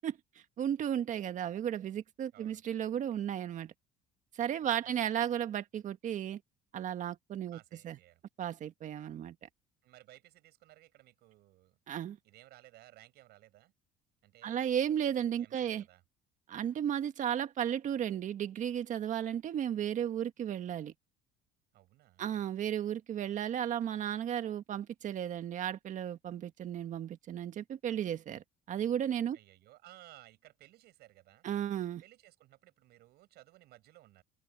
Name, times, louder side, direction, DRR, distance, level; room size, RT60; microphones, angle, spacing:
voice 1, 0.6-3.7 4.3-6.4 6.7-7.6 7.8-8.0 8.4-9.5 11.9-12.2 14.4-15.8 16.5-20.9 22.2-29.4 31.4-32.0, right 10 dB, 45° right, 1.6 m, -34 dB
voice 2, 2.3-2.6 4.6-4.9 7.5-8.2 9.8-11.8 12.2-13.7 14.2-16.0 21.7-22.4 29.3-31.5 32.0-34.2, right 16 dB, 65° right, 7.9 m, -59 dB
cardioid pair, 125°, 18 cm